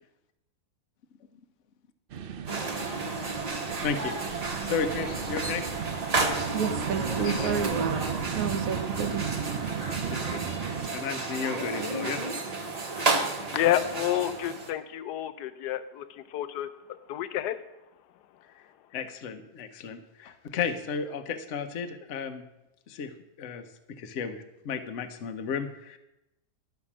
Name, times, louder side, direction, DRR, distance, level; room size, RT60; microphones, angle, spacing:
sound 1, 2.1-10.9, right 8 dB, 80° right, 0.5 m, -35 dB
sound 2, 2.5-14.7, right 3 dB, 30° right, 1.0 m, -32 dB
voice 1, 3.8-4.1 4.6-5.6 7.2-7.5 10.1-10.4 10.9-12.2 18.5-18.6 18.9-22.4 22.9-23.1 23.4-26.0, left 6 dB, 55° left, 8 dB, 1.0 m, -33 dB
voice 2, 6.5-8.0 8.3-9.3, right 7 dB, 65° right, 10 dB, 1.1 m, -30 dB
voice 3, 13.0-16.7 17.1-17.6, left 12 dB, 85° left, 13 dB, 1.2 m, -30 dB
11.5 x 5.8 x 7.2 m, 0.93 s
omnidirectional pair, 1.7 m